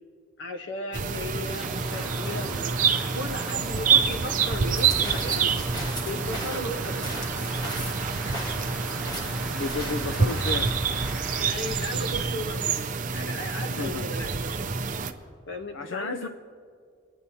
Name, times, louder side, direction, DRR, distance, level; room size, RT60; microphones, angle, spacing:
voice 1, 0.4-2.9 3.1-5.5 6.0-7.3 8.2-8.3 11.4-14.7 15.5-16.3, left 1 dB, 70° left, 4 dB, 1.1 m, -36 dB
sound 1, 0.9-15.1, right 5 dB, 45° right, 0.5 m, -27 dB
sound 2, 1.5-13.3, right 2 dB, ahead, 0.9 m, -39 dB
sound 3, 4.6-10.8, equal, 20° left, 1.2 m, -38 dB
voice 2, 9.5-10.8 13.7-14.1 15.7-16.3, left 4 dB, 85° left, 9 dB, 0.4 m, -32 dB
24.0 x 9.9 x 2.8 m, 2.2 s
head